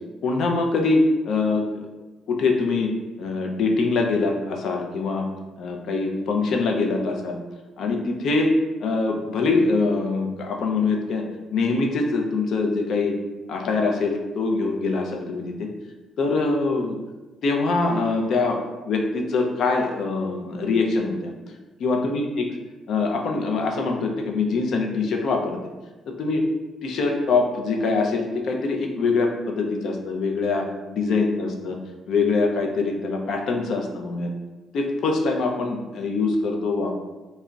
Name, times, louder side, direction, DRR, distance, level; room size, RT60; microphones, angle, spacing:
voice 1, 0.2-1.8 2.3-2.9 3.2-5.3 5.6-7.4 7.8-8.5 8.8-11.2 11.5-13.2 13.5-15.7 16.2-17.0 17.4-21.3 21.8-22.5 22.9-25.6 26.2-26.4 26.8-31.8 32.1-34.3 34.7-37.0, left 3 dB, 70° left, 2 dB, 0.4 m, -23 dB
2.2 x 2.0 x 3.7 m, 1.2 s
cardioid pair, 90°, 0 cm